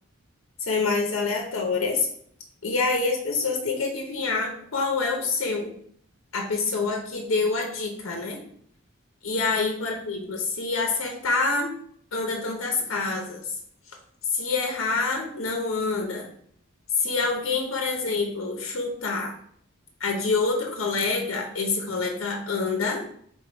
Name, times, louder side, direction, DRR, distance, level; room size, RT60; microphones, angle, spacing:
voice 1, 0.6-2.1 2.6-5.7 6.3-8.4 9.2-11.7 12.1-13.5 14.3-16.3 17.0-19.3 20.0-23.0, left 4 dB, 70° left, 2 dB, 0.7 m, -26 dB
3.8 x 3.4 x 3.9 m, 0.65 s
head